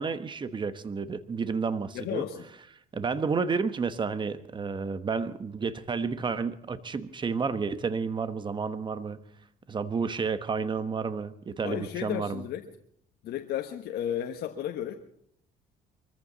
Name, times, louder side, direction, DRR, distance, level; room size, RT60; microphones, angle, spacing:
voice 1, 0.0-2.2 2.9-9.2 9.7-12.4, right 5 dB, 30° right, 12 dB, 1.2 m, -31 dB
voice 2, 1.9-2.5 11.6-12.6 13.2-14.9, left 10 dB, 70° left, 4 dB, 1.4 m, -33 dB
23.5 x 14.5 x 4.1 m, 0.67 s
cardioid pair, 110°, 17 cm